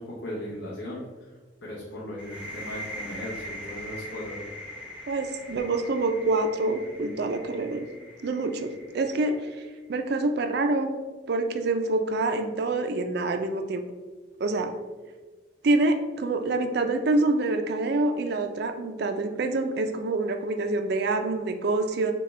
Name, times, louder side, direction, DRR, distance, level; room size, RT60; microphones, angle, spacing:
voice 1, 0.0-1.4 1.6-4.4, left 1 dB, 70° left, -6 dB, 0.9 m, -37 dB
sound 1, 2.2-9.7, equal, 5° right, 0.6 m, -42 dB
voice 2, 5.1-7.9 8.2-9.4 9.9-10.9 11.3-13.8 14.4-14.7 15.6-22.1, right 2 dB, 55° right, 6 dB, 0.4 m, -26 dB
6.4 x 2.3 x 3.2 m, 1.3 s
head